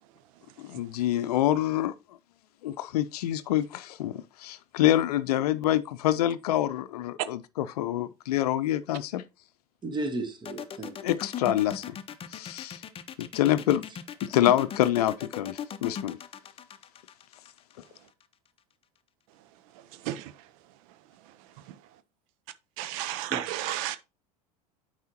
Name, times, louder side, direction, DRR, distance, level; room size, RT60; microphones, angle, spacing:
voice 1, 0.6-1.9 2.6-9.2 11.0-12.0 12.3-12.8 13.2-13.8 14.2-16.2, left 13 dB, 70° left, 0.6 m, -26 dB
voice 2, 9.8-11.0 23.3-23.4, right 2 dB, 25° right, 1.4 m, -33 dB
sound 1, 10.4-18.2, left 8 dB, 25° left, 0.7 m, -38 dB
voice 3, 22.8-24.0, right 13 dB, 60° right, 0.6 m, -32 dB
9.1 x 4.9 x 2.9 m
hypercardioid pair, 80°, 20 cm